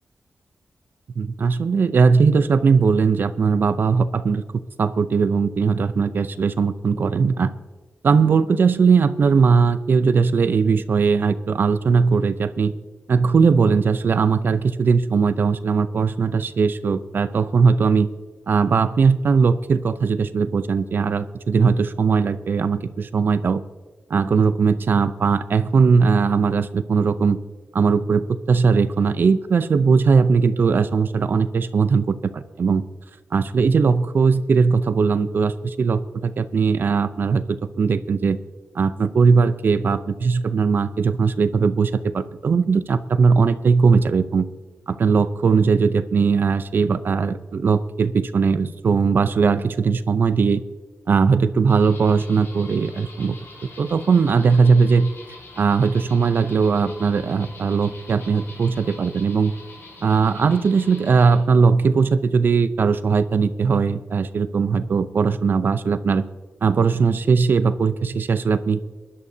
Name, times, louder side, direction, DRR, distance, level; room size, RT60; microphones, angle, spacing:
voice 1, 1.2-4.4 4.8-7.5 8.0-12.7 13.1-18.1 18.5-23.6 24.1-27.4 27.7-32.8 33.3-38.4 38.7-44.5 44.9-50.6 51.1-53.4 53.8-55.1 55.6-59.5 60.0-66.2 66.6-68.9, right 5 dB, 60° right, 13 dB, 0.5 m, -19 dB
sound 1, 51.7-61.4, left 2 dB, 75° left, 3.4 m, -44 dB
22.5 x 11.0 x 2.7 m, 1.3 s
wide cardioid pair, 115°, 4 cm